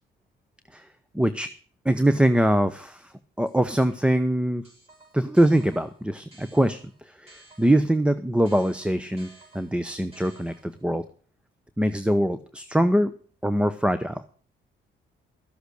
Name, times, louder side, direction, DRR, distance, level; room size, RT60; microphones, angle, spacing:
voice 1, 1.1-1.5 1.8-4.6 5.1-9.3 9.5-11.0 11.8-13.1 13.4-14.2, right 1 dB, 5° right, 12 dB, 0.8 m, -23 dB
sound 1, 3.5-4.2 4.6-8.0 8.4-10.9, right 2 dB, 30° right, 6.0 m, -54 dB
13.5 x 8.0 x 6.4 m, 0.43 s
cardioid pair, 90°, 20 cm